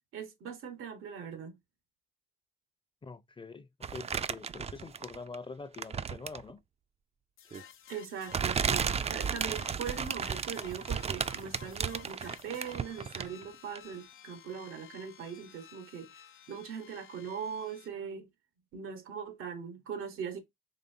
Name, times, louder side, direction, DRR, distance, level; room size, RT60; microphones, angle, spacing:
voice 1, 0.1-1.6 7.9-18.3 18.7-20.4, right 7 dB, 85° right, 1.0 m, -41 dB
voice 2, 3.0-6.6, left 4 dB, 25° left, 0.6 m, -45 dB
sound 1, 3.8-5.3 5.7-6.5 7.5-7.6 8.3-13.4 13.7-13.8, right 6 dB, 30° right, 0.3 m, -34 dB
sound 2, 7.4-17.9, left 9 dB, 75° left, 0.6 m, -54 dB
4.1 x 3.2 x 2.6 m
supercardioid pair, 60°, 21 cm